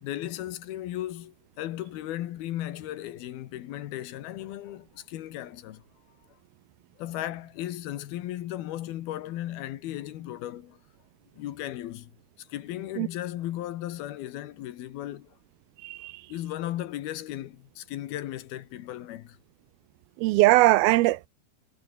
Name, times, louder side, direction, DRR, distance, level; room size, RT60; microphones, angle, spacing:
voice 1, 0.0-5.8 7.0-10.8 11.4-12.1 12.5-15.3 16.3-19.4, left 13 dB, 80° left, 3.2 m, -36 dB
voice 2, 20.2-21.3, right 19 dB, 85° right, 2.5 m, -20 dB
omnidirectional pair, 4.4 m